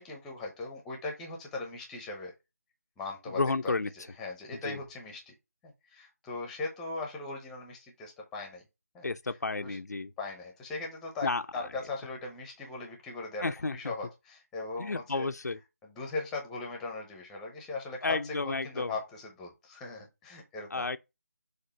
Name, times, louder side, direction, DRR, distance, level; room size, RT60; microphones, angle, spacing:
voice 1, 0.0-2.3 3.0-5.3 5.9-8.6 8.9-9.1 9.6-9.8 10.2-15.3 15.8-20.9, left 3 dB, 5° left, 0.8 m, -39 dB
voice 2, 3.3-3.9 4.6-4.8 9.0-10.1 11.2-11.8 13.4-13.9 14.8-15.6 18.0-18.9 20.7-21.0, left 3 dB, 80° left, 0.6 m, -32 dB
6.5 x 2.6 x 5.5 m
figure-of-eight pair, 165°, 9 cm